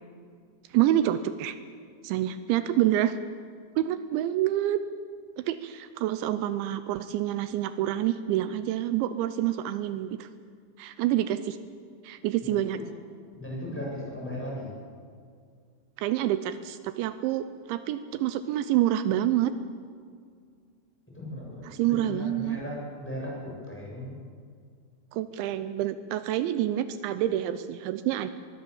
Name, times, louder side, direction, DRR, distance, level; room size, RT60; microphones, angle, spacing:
voice 1, 0.7-1.6 2.0-3.2 3.8-4.8 5.4-10.3 10.8-11.6 12.0-12.8 16.0-19.5 21.6-22.6 25.1-28.3, right 12 dB, 85° right, 12 dB, 3.0 m, -27 dB
voice 2, 12.4-12.9 13.3-14.7 21.1-24.1, left 1 dB, ahead, -3 dB, 7.5 m, -37 dB
24.0 x 22.0 x 7.2 m, 2.1 s
omnidirectional pair, 5.3 m